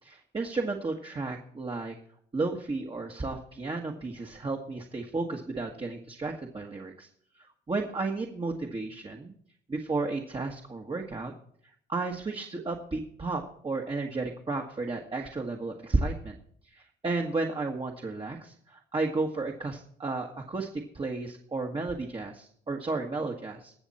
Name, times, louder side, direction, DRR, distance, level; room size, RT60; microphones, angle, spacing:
voice 1, 0.0-1.9 2.3-7.1 7.7-9.3 9.7-11.3 11.9-16.4 16.6-20.7 20.9-23.7, right 3 dB, 25° right, 1 dB, 1.7 m, -33 dB
20.5 x 7.2 x 4.3 m, 0.63 s
cardioid pair, 90°, 20 cm